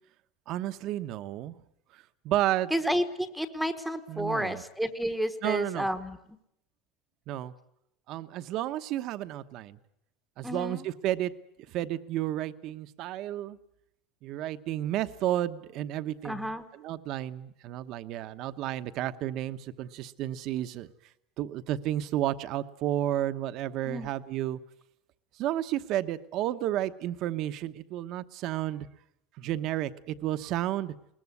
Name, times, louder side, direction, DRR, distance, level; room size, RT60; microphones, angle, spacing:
voice 1, 0.5-1.6 1.9-2.7 4.1-4.6 5.4-5.9 7.3-7.5 8.1-9.8 10.4-11.3 11.7-13.6 14.2-20.9 21.4-24.6 25.4-28.9 29.4-30.9, right 13 dB, 40° right, 11 dB, 1.0 m, -32 dB
voice 2, 2.7-6.2 10.4-10.8 16.2-16.6 23.8-24.1, equal, ahead, 8 dB, 1.1 m, -31 dB
21.5 x 20.0 x 9.6 m, 0.76 s
cardioid pair, 175°, 0 cm